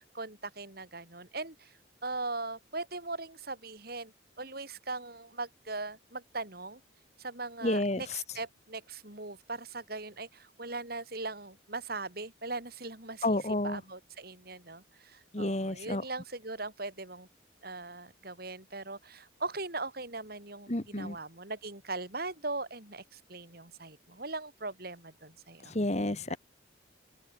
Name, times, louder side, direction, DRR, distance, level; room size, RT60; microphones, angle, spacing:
voice 1, 0.0-6.8 7.2-13.4 13.6-17.3 17.6-25.7 26.3-26.4, right 3 dB, 50° right, 3.9 m, -40 dB
voice 2, 7.6-8.0 13.2-13.8 15.3-16.0 20.7-21.2 25.7-26.4, left 1 dB, 35° left, 1.7 m, -30 dB
open air
head